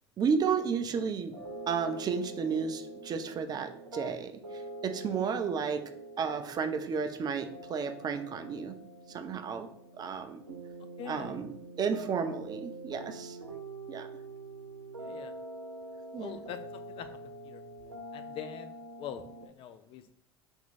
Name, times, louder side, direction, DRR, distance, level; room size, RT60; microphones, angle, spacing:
voice 1, 0.2-1.3 1.7-5.8 6.2-8.8 9.1-9.7 9.9-10.4 11.1-11.5 11.8-13.4 13.9-14.1 16.1-16.4, right 6 dB, 30° right, 8 dB, 0.5 m, -32 dB
sound 1, 1.3-19.5, right 2 dB, 90° right, 0.5 m, -45 dB
voice 2, 11.0-11.4 15.0-15.3 16.2-17.1 17.4-17.6 18.1-20.1, left 9 dB, 40° left, 10 dB, 0.5 m, -44 dB
3.5 x 3.0 x 4.1 m, 0.71 s
figure-of-eight pair, 75°, 14 cm